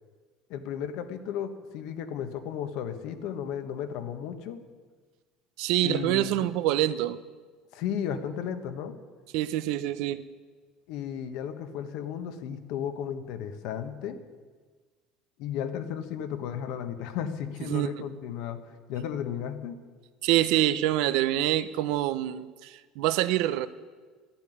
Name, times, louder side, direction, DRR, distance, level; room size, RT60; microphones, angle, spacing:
voice 1, 0.5-4.6 5.8-6.5 7.7-9.0 10.9-14.2 15.4-18.6 18.9-19.8, left 8 dB, 70° left, 8 dB, 1.5 m, -34 dB
voice 2, 5.6-7.2 9.3-10.2 17.7-18.1 20.2-23.7, right 14 dB, 75° right, 13 dB, 0.8 m, -26 dB
12.0 x 11.5 x 9.6 m, 1.5 s
cardioid pair, 135°, 0 cm